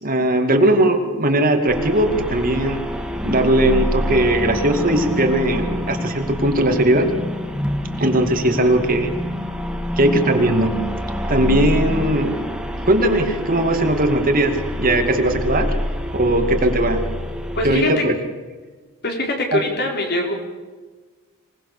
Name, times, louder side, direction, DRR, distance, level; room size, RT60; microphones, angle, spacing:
voice 1, 0.0-2.8 3.2-7.1 8.0-9.1 10.0-10.8 11.3-12.4 12.8-15.8 16.1-17.0 17.6-18.2 19.5-19.6, right 1 dB, 40° right, 5 dB, 2.4 m, -18 dB
sound 1, 1.7-17.8, equal, 5° right, 2.0 m, -26 dB
voice 2, 17.5-17.9 19.0-20.3, left 1 dB, 50° left, 1 dB, 4.8 m, -22 dB
26.0 x 19.5 x 6.9 m, 1.3 s
head